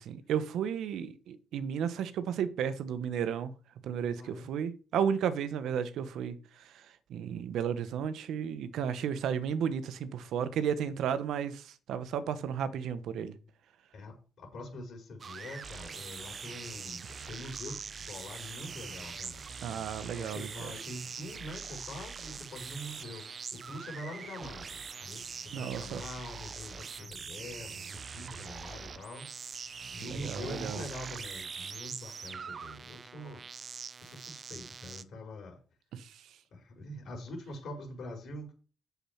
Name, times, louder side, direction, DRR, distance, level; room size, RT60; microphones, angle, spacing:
voice 1, 0.0-3.5 3.8-6.4 7.1-13.3 19.6-20.7 25.5-26.0 30.1-30.8 35.9-36.1, right 8 dB, 80° right, 1.0 m, -33 dB
voice 2, 4.2-4.5 13.9-19.4 20.1-23.2 23.5-29.6 29.9-33.4 34.0-35.6 36.5-38.5, left 1 dB, 60° left, 4.1 m, -44 dB
sound 1, 15.2-35.0, right 5 dB, 45° right, 0.7 m, -43 dB
7.2 x 7.2 x 5.7 m
cardioid pair, 90°, 0 cm